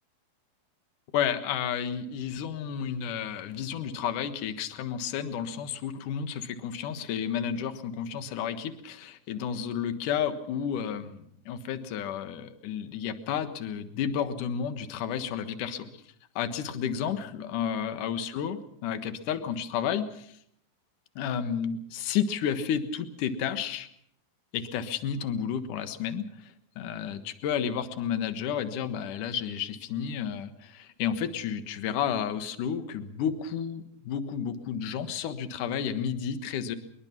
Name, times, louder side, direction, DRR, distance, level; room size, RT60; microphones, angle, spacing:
voice 1, 1.1-15.9 16.4-20.4 21.2-23.9 24.5-36.8, left 8 dB, 65° left, 9 dB, 2.8 m, -31 dB
23.5 x 22.0 x 5.9 m, 0.70 s
omnidirectional pair, 4.4 m